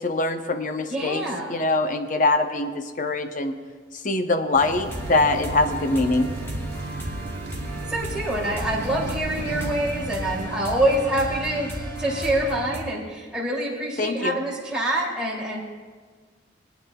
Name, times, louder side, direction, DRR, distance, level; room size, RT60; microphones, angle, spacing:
voice 1, 0.0-1.2 1.5-3.5 4.0-6.3 14.0-14.4, left 2 dB, 45° left, 7 dB, 0.7 m, -23 dB
voice 2, 0.9-1.6 7.9-11.7 12.0-15.6, right 1 dB, 5° right, -6 dB, 2.5 m, -26 dB
sound 1, 4.5-10.4, right 3 dB, 55° right, 0.5 m, -36 dB
sound 2, 4.9-12.8, right 1 dB, 15° left, 1.4 m, -33 dB
24.0 x 9.3 x 2.3 m, 1.5 s
head